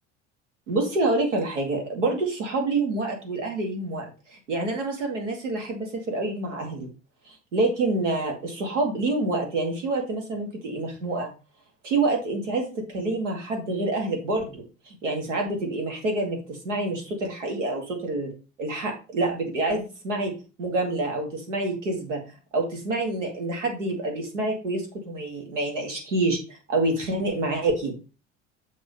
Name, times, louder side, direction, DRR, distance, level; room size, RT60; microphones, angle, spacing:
voice 1, 0.7-6.9 7.3-11.3 11.8-18.3 18.6-20.3 20.6-22.2 22.5-27.9, right 2 dB, 80° right, 2 dB, 2.4 m, -27 dB
7.1 x 6.3 x 3.3 m, 0.33 s
hypercardioid pair, 70°, 36 cm